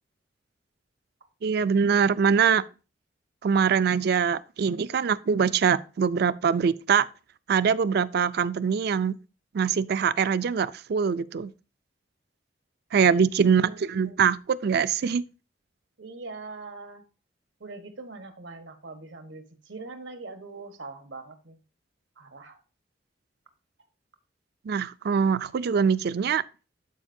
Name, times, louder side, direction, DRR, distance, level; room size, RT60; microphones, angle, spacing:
voice 1, 1.4-2.6 3.4-7.1 7.5-9.2 9.5-11.5 12.9-15.2 24.7-26.4, right 6 dB, 60° right, 0.4 m, -23 dB
voice 2, 12.9-13.3 13.6-14.2 16.0-17.0 17.6-21.6 22.2-22.6, right 3 dB, 90° right, 1.3 m, -42 dB
12.5 x 5.0 x 2.7 m
head